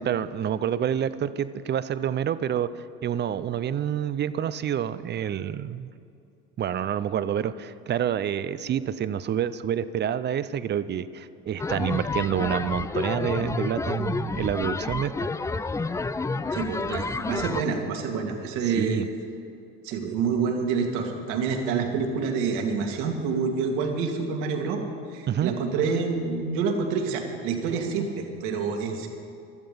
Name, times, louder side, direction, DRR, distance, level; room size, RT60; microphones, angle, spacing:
voice 1, 0.1-5.9 6.6-15.3 18.6-19.1 25.3-25.5, right 9 dB, 35° right, 15 dB, 0.6 m, -28 dB
sound 1, 11.6-17.6, left 3 dB, 10° left, 0.4 m, -29 dB
voice 2, 16.5-19.0 19.8-24.8 25.1-29.1, right 5 dB, 70° right, 3 dB, 2.2 m, -27 dB
15.5 x 12.5 x 5.3 m, 2.5 s
hypercardioid pair, 75°, 31 cm